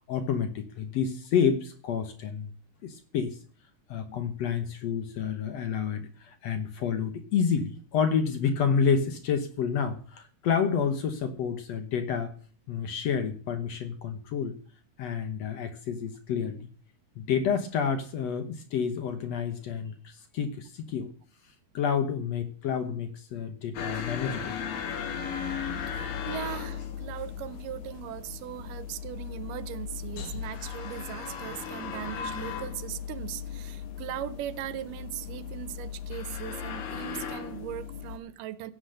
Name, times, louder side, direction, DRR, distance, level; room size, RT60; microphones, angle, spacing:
voice 1, 0.1-2.5 2.8-3.4 3.9-12.3 12.7-14.5 15.0-16.7 17.2-21.1 21.7-24.6, left 6 dB, 60° left, 1.9 m, -29 dB
sound 1, 23.7-38.2, left 7 dB, 80° left, 3.4 m, -37 dB
voice 2, 25.9-38.7, right 13 dB, 80° right, 2.3 m, -39 dB
16.0 x 7.9 x 6.5 m
omnidirectional pair, 3.9 m